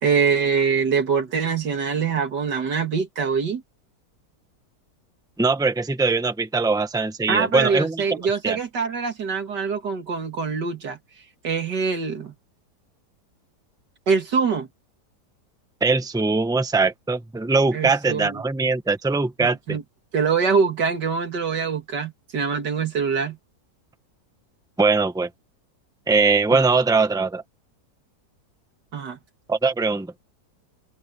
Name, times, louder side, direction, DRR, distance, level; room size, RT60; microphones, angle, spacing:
voice 1, 0.0-3.6 7.3-11.0 11.4-12.3 14.1-14.7 17.7-18.4 19.4-19.8 20.1-23.4 28.9-29.2, right 5 dB, 85° right, 2.6 m, -24 dB
voice 2, 5.4-8.0 8.4-8.6 15.8-19.8 24.8-25.3 26.1-27.4 29.5-30.1, right 4 dB, 5° right, 1.1 m, -21 dB
omnidirectional pair, 1.8 m